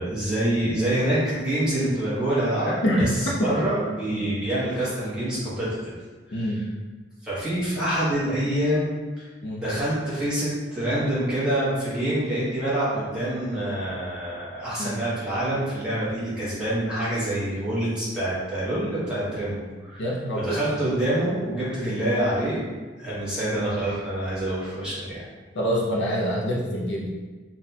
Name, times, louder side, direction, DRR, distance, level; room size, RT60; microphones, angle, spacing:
voice 1, 0.0-3.1 3.4-5.9 6.3-6.5 7.2-9.3 9.6-20.1 20.3-22.7 23.0-25.2, right 1 dB, 5° right, -11 dB, 1.1 m, -26 dB
voice 2, 6.3-6.6 9.4-9.6 14.8-15.0 20.0-20.6 21.8-21.9 25.5-27.1, equal, 65° left, -3 dB, 0.5 m, -26 dB
3.8 x 2.2 x 2.7 m, 1.3 s
head